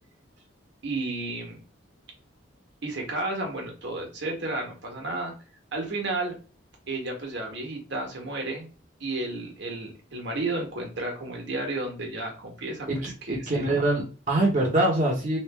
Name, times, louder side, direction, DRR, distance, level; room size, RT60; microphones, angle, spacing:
voice 1, 0.8-1.6 2.8-5.3 5.7-6.3 6.9-8.7 9.0-13.8, right 2 dB, 60° right, 1 dB, 1.2 m, -32 dB
voice 2, 12.9-15.4, right 1 dB, 40° right, -3 dB, 0.9 m, -24 dB
3.2 x 2.6 x 3.3 m, 0.35 s
head